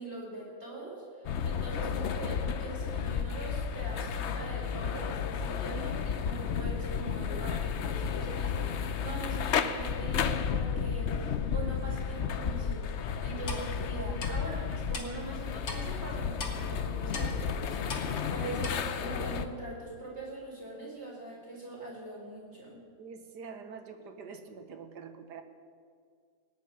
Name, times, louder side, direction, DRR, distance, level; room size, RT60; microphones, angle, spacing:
voice 1, 0.0-12.9 13.2-17.9 18.3-22.8, right 2 dB, 30° right, -4 dB, 4.7 m, -42 dB
sound 1, 1.2-19.5, left 7 dB, 90° left, 0.6 m, -32 dB
Clock, 13.5-13.6 14.2-14.3 14.9-15.1 15.7-15.8 16.4-16.5 17.1-17.3 17.9-18.1 18.6-18.7, left 4 dB, 60° left, 2.4 m, -37 dB
voice 2, 23.0-25.4, right 5 dB, 60° right, 6 dB, 1.6 m, -45 dB
18.5 x 6.4 x 9.6 m, 2.1 s
omnidirectional pair, 2.1 m